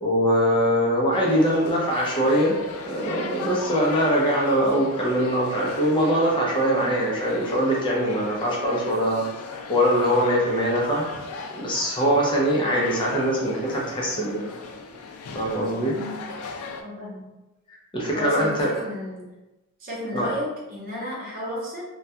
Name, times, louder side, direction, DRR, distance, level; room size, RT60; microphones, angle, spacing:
voice 1, 0.0-2.5 2.8-9.2 9.7-11.1 11.6-14.4 15.3-15.9 17.7-18.9 20.1-20.3, equal, 25° left, -3 dB, 0.5 m, -22 dB
sound 1, 1.1-16.8, left 4 dB, 85° left, 0.3 m, -38 dB
voice 2, 16.8-17.3 18.1-19.3 19.8-21.8, left 1 dB, 40° right, -5 dB, 0.8 m, -33 dB
2.2 x 2.2 x 2.7 m, 1.0 s
head